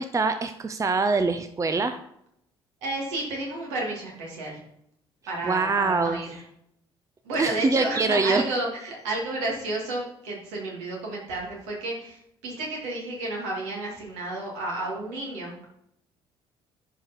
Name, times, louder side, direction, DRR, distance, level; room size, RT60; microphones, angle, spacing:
voice 1, 0.0-2.0 5.4-6.2 7.4-8.4, right 3 dB, 25° right, 10 dB, 0.6 m, -24 dB
voice 2, 2.8-4.6 5.3-6.4 7.2-15.7, right 2 dB, 65° right, -2 dB, 2.8 m, -31 dB
11.0 x 5.0 x 4.5 m, 0.76 s
figure-of-eight pair, 50°, 13 cm